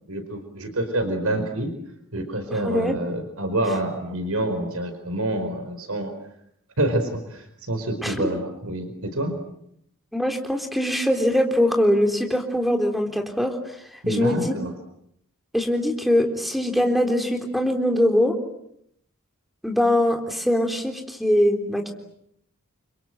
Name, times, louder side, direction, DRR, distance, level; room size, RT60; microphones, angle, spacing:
voice 1, 0.1-1.7 2.1-6.1 6.8-9.4 14.0-14.7, right 1 dB, 80° right, 7 dB, 4.7 m, -27 dB
voice 2, 2.5-3.0 8.0-8.3 10.1-13.6 14.1-14.5 15.5-18.4 19.6-21.9, left 1 dB, ahead, 3 dB, 3.7 m, -22 dB
30.0 x 25.5 x 7.8 m, 0.73 s
head